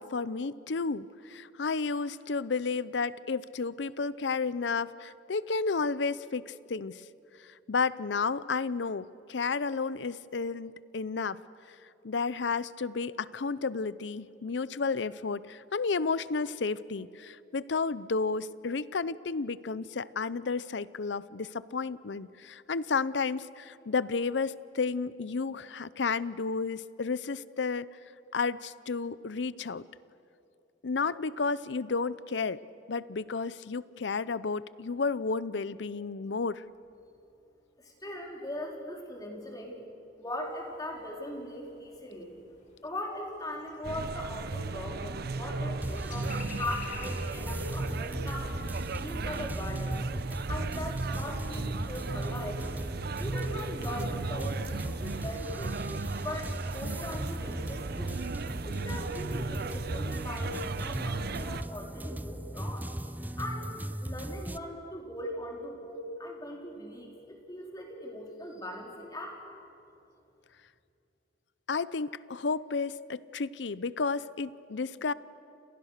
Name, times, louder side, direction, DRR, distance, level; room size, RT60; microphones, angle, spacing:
voice 1, 0.0-7.0 7.7-11.4 12.0-27.9 28.3-29.8 30.8-32.6 32.9-36.6 71.7-75.1, left 4 dB, 70° left, 18 dB, 0.6 m, -32 dB
voice 2, 37.8-39.8 40.2-42.3 42.8-48.6 49.0-50.0 50.5-52.6 53.2-55.8 56.2-58.2 58.6-62.9 63.4-63.7 64.0-69.4, left 1 dB, 20° left, 0 dB, 4.2 m, -40 dB
sound 1, 40.4-55.2, left 3 dB, 45° left, 5.9 m, -54 dB
sound 2, 43.8-61.6, right 3 dB, 60° right, 0.7 m, -36 dB
sound 3, 45.8-64.6, right 1 dB, 10° right, 0.6 m, -38 dB
30.0 x 28.0 x 6.6 m, 2.7 s
head